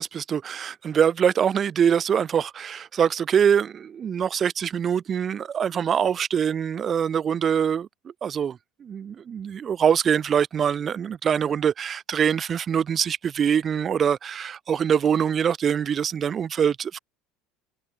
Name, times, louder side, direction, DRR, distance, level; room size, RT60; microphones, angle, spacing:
voice 1, 0.0-17.0, right 8 dB, 35° right, 0.6 m, -24 dB
figure-of-eight pair, 70°, 0 cm